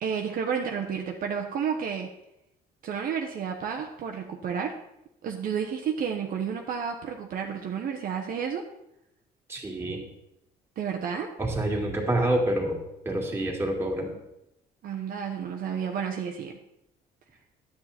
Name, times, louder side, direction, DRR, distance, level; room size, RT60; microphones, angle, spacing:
voice 1, 0.0-2.1 2.8-4.7 5.2-8.6 10.8-11.3 14.8-16.6, right 7 dB, 60° right, 2 dB, 1.0 m, -31 dB
voice 2, 9.5-10.0 11.4-12.8 13.1-14.1, right 1 dB, 15° right, -1 dB, 2.4 m, -27 dB
10.0 x 8.4 x 4.2 m, 0.86 s
cardioid pair, 110°, 17 cm